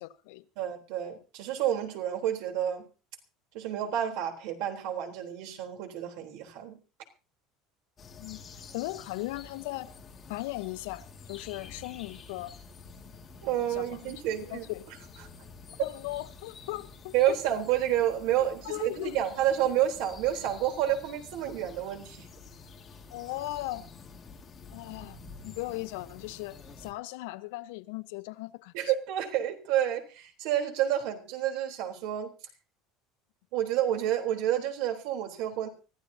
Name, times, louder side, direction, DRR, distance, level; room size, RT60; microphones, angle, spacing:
voice 1, 0.0-0.4 8.2-8.4 8.7-9.9 10.3-12.5 13.7-14.1 14.5-14.8 15.8-17.1 18.6-19.2 23.1-23.8 24.7-25.2 25.4-28.7, left 18 dB, 85° left, 1.0 m, -37 dB
voice 2, 0.6-2.9 3.5-6.8 13.4-14.7 17.1-22.3 28.7-32.3 33.5-35.7, right 11 dB, 65° right, 3.7 m, -29 dB
sound 1, 8.0-26.9, left 4 dB, 20° left, 2.2 m, -49 dB
24.5 x 14.5 x 2.8 m
cardioid pair, 175°, 0 cm